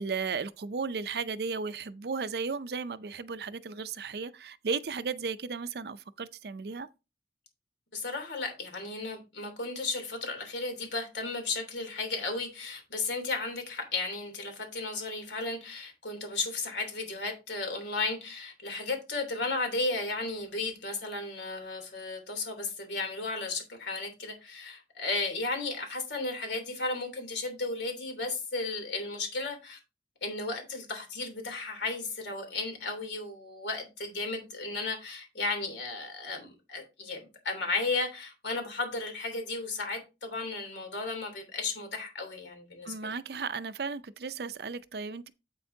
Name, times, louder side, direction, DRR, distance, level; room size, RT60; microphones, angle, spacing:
voice 1, 0.0-6.9 42.8-45.3, right 5 dB, 60° right, 0.5 m, -35 dB
voice 2, 7.9-29.8 30.2-42.9, left 3 dB, 85° left, 3.1 m, -34 dB
8.3 x 7.7 x 2.8 m
head